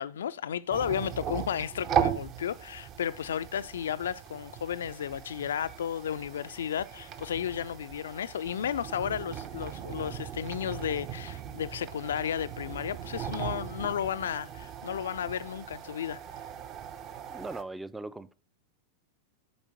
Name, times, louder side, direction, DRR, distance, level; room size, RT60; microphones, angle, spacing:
voice 1, 0.0-16.2, left 9 dB, 65° left, 0.3 m, -33 dB
sound 1, 0.7-17.6, right 9 dB, 35° right, 0.7 m, -38 dB
voice 2, 17.3-18.3, right 2 dB, 5° right, 0.4 m, -39 dB
7.1 x 5.0 x 6.6 m
figure-of-eight pair, 90°, 0 cm